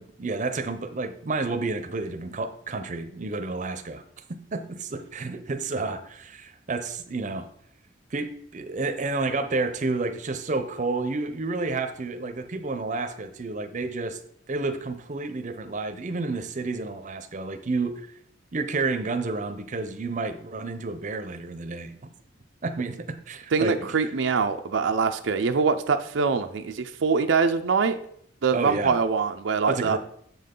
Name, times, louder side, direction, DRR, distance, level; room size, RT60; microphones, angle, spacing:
voice 1, 0.0-4.0 4.5-7.5 8.1-14.2 14.5-18.0 18.5-22.1 22.6-23.9 28.5-29.0 29.7-30.0, right 3 dB, 40° right, 8 dB, 0.6 m, -30 dB
voice 2, 23.5-28.0 28.4-30.0, right 5 dB, 80° right, 7 dB, 0.5 m, -24 dB
7.3 x 5.5 x 3.7 m, 0.67 s
head